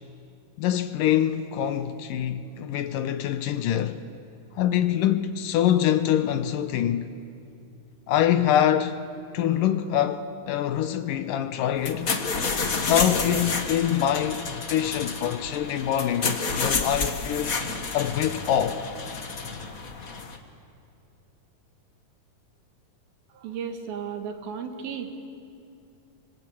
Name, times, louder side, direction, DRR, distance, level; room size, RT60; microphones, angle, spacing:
voice 1, 0.6-4.0 4.6-7.1 8.1-9.0 9.3-12.1 12.8-17.6 17.9-18.9, left 10 dB, 75° left, 2.3 m, -25 dB
sound 1, 11.8-20.4, left 4 dB, 55° left, 0.9 m, -30 dB
voice 2, 23.3-25.1, right 7 dB, 80° right, 3.6 m, -34 dB
26.5 x 25.5 x 8.5 m
omnidirectional pair, 4.2 m